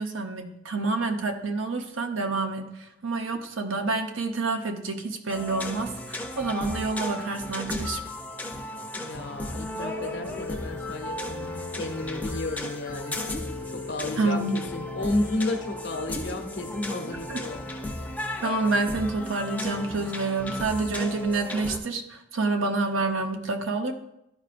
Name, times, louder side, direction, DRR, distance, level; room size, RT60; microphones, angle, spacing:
voice 1, 0.0-2.7 3.0-8.0 14.2-14.5 17.3-17.4 18.4-23.9, right 3 dB, 85° right, 5 dB, 0.8 m, -28 dB
sound 1, 5.3-21.8, left 1 dB, 10° left, 0.6 m, -35 dB
voice 2, 9.0-11.5 11.7-13.2 13.7-17.6, left 2 dB, 65° left, 5 dB, 0.9 m, -32 dB
sound 2, 10.0-18.4, left 6 dB, 45° right, 1.0 m, -41 dB
11.5 x 4.8 x 2.5 m, 0.84 s
head